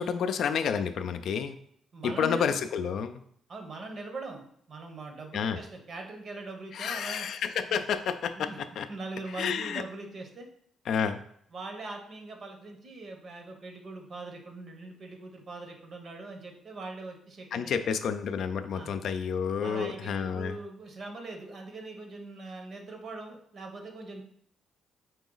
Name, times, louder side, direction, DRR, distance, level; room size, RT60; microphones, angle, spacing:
voice 1, 0.0-1.6 2.0-3.2 5.3-5.6 6.7-8.5 8.8-8.9 9.4-9.8 10.9-11.2 17.5-20.6, left 7 dB, 70° left, 9 dB, 0.4 m, -30 dB
voice 2, 1.9-2.6 3.5-7.3 7.7-7.8 8.3-8.6 8.9-10.5 11.5-17.9 18.7-18.9 19.6-24.2, right 2 dB, 50° right, 4 dB, 0.9 m, -41 dB
4.6 x 3.0 x 3.9 m, 0.65 s
cardioid pair, 90°, 0 cm